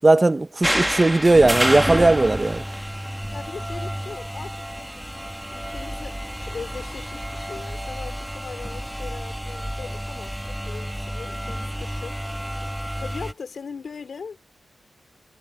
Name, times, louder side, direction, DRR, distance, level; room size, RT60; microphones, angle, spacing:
voice 1, 0.0-2.6, right 2 dB, 20° right, 0.7 m, -17 dB
sound 1, 0.6-13.3, equal, ahead, 1.5 m, -29 dB
voice 2, 3.3-12.5 13.0-14.4, left 5 dB, 55° left, 3.0 m, -40 dB
wide cardioid pair, 165°, 0 cm